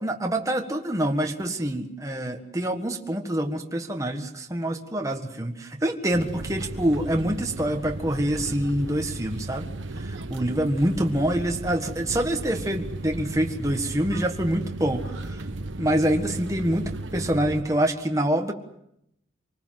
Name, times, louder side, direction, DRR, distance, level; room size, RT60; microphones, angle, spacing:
voice 1, 0.0-9.7 9.9-15.4 15.8-18.5, right 1 dB, 15° right, 3 dB, 1.6 m, -26 dB
sound 1, 6.1-17.6, right 2 dB, 90° right, 1.3 m, -35 dB
26.5 x 20.0 x 7.6 m, 0.78 s
head